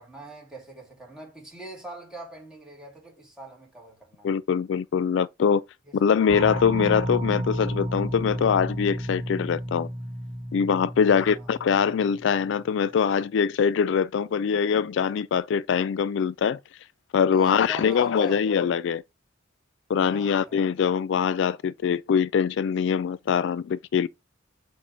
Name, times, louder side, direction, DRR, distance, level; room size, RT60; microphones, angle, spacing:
voice 1, 0.0-4.3 5.9-6.0 11.0-11.5 17.3-18.4 20.0-20.7, right 2 dB, 5° right, 2.5 m, -42 dB
voice 2, 4.2-5.6 5.9-9.9 10.5-16.6 17.1-19.0 19.9-24.1, left 7 dB, 65° left, 0.3 m, -23 dB
sound 1, 6.3-12.6, equal, 25° right, 1.4 m, -32 dB
8.3 x 3.0 x 5.0 m
head